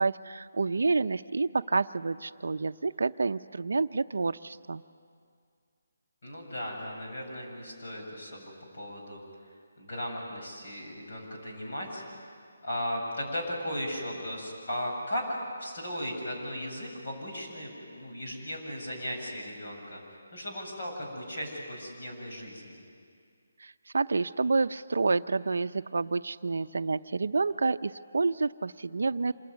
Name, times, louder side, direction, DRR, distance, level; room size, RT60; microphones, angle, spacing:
voice 1, 0.0-4.8 23.6-29.3, right 3 dB, 65° right, 11 dB, 0.6 m, -29 dB
voice 2, 6.2-9.2 9.8-12.0 12.6-22.8, equal, 40° left, -1 dB, 7.7 m, -36 dB
27.0 x 21.5 x 9.6 m, 2.3 s
hypercardioid pair, 180°, 0 cm